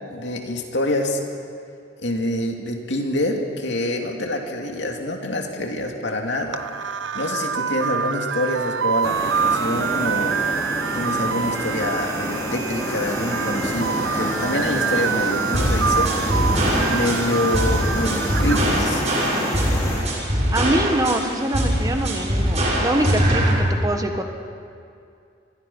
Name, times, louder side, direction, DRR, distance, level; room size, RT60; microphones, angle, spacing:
voice 1, 0.1-1.2 2.0-6.6 7.1-10.4 10.9-16.2 16.9-19.0, left 1 dB, 65° left, 2 dB, 2.7 m, -26 dB
sound 1, 6.5-18.7, right 6 dB, 75° right, 0.6 m, -26 dB
sound 2, 9.0-20.0, equal, 15° left, 5.6 m, -28 dB
sound 3, 15.5-23.5, equal, 35° right, 5.6 m, -22 dB
voice 2, 20.5-24.2, right 1 dB, 20° right, 5 dB, 1.6 m, -24 dB
27.5 x 23.0 x 5.6 m, 2.4 s
head